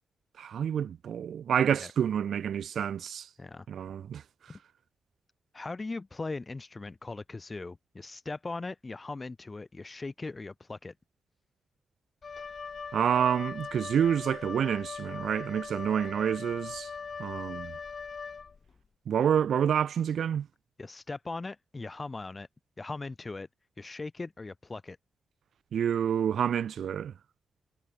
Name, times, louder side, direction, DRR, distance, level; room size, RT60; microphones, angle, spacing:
voice 1, 0.4-3.3 3.7-4.2 12.9-16.9 17.2-17.7 19.1-20.5 25.7-27.1, right 8 dB, 80° right, 1.6 m, -28 dB
voice 2, 5.5-10.9 20.8-22.5 22.8-23.5 23.8-25.0, left 3 dB, 25° left, 6.0 m, -39 dB
Wind instrument woodwind instrument, 12.2-18.8, left 5 dB, 45° left, 7.2 m, -40 dB
wide cardioid pair, 120°, 0 cm